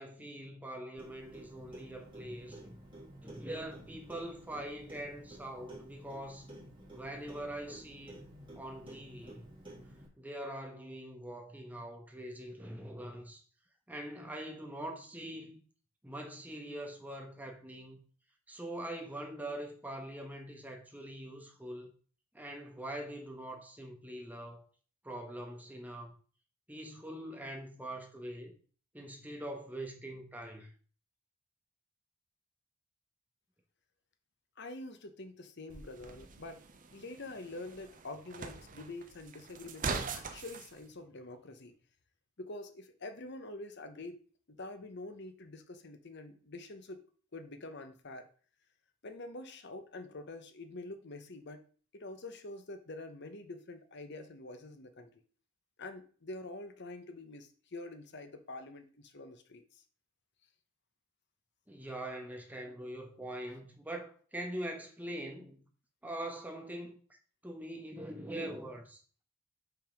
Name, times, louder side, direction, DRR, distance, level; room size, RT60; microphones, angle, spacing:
voice 1, 0.0-2.8 3.2-6.5 6.9-9.4 10.2-13.4 13.9-15.6 16.0-18.0 18.5-21.9 22.3-24.6 25.0-26.2 26.7-28.5 28.9-30.7 61.7-65.6 66.0-67.0 67.4-69.0, right 1 dB, 10° right, 1.3 m, -43 dB
Clock, 1.0-10.1, right 1 dB, 25° right, 2.7 m, -52 dB
voice 2, 34.6-36.6 36.9-41.7 42.4-44.2 44.5-47.0 47.3-48.3 49.0-51.6 51.9-55.1 55.8-59.8, left 2 dB, 55° left, 1.0 m, -46 dB
sound 1, 35.7-40.7, right 4 dB, 40° right, 0.8 m, -42 dB
5.9 x 5.5 x 5.2 m
head